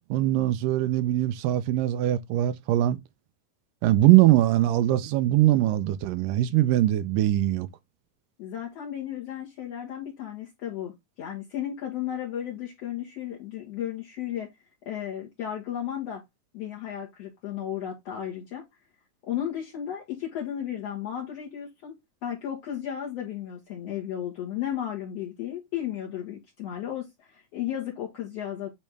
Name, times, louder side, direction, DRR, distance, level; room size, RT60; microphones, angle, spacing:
voice 1, 0.1-3.0 3.8-7.7, right 14 dB, 85° right, 2.2 m, -22 dB
voice 2, 8.4-10.9 11.2-14.5 14.9-16.2 16.5-18.6 19.2-21.9 22.2-28.7, left 10 dB, 60° left, 2.1 m, -34 dB
8.6 x 3.4 x 3.4 m
omnidirectional pair, 3.9 m